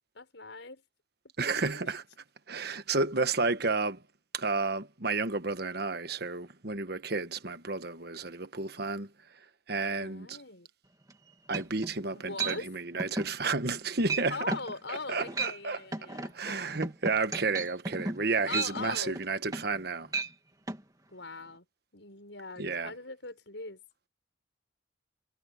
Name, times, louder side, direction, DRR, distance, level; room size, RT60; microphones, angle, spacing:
voice 1, 0.1-0.8 1.4-1.9 9.9-10.7 12.1-12.7 14.3-16.8 18.5-19.2 21.1-21.6 21.9-23.8, left 3 dB, 70° left, 6.6 m, -41 dB
voice 2, 1.4-2.0 2.5-4.0 4.3-9.1 9.7-10.4 11.5-14.5 14.9-15.8 16.3-20.1 22.6-22.9, right 3 dB, 55° right, 1.3 m, -31 dB
sound 1, 11.1-11.2 11.5-12.0 12.4-12.6 13.0-13.3 13.7-13.8 14.1-14.3 14.5-14.7 15.2-15.6 15.9-19.8 20.1-20.3 20.7-20.8, right 3 dB, 20° right, 2.5 m, -34 dB
head